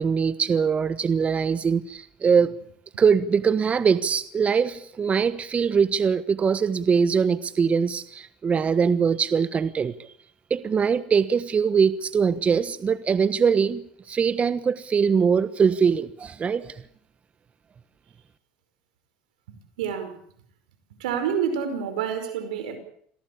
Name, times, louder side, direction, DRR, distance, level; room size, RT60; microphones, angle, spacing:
voice 1, 0.0-2.5 3.0-10.1 10.5-16.8, right 6 dB, 30° right, 14 dB, 1.3 m, -22 dB
voice 2, 19.8-20.1 21.0-22.8, right 7 dB, 90° right, 9 dB, 5.3 m, -28 dB
27.0 x 17.5 x 8.7 m, 0.65 s
supercardioid pair, 90°, 4 cm